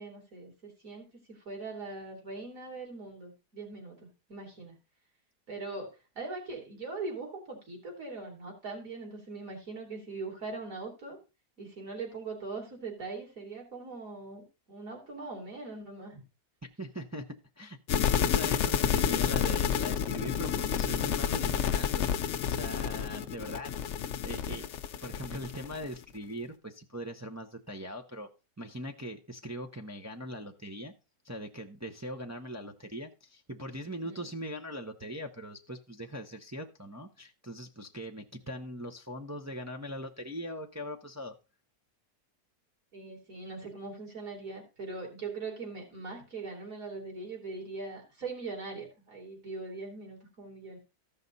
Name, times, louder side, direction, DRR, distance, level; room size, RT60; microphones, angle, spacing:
voice 1, 0.0-4.8 5.5-11.2 11.6-16.2 19.2-19.3 34.0-34.3 42.9-50.8, right 3 dB, 55° right, 3.6 m, -41 dB
voice 2, 16.8-17.3 17.6-23.7 24.2-24.7 25.0-28.3 28.6-30.9 31.2-41.3, equal, 20° right, 0.4 m, -41 dB
sound 1, 17.9-25.9, left 8 dB, 60° left, 0.8 m, -29 dB
15.0 x 5.8 x 4.0 m
omnidirectional pair, 1.7 m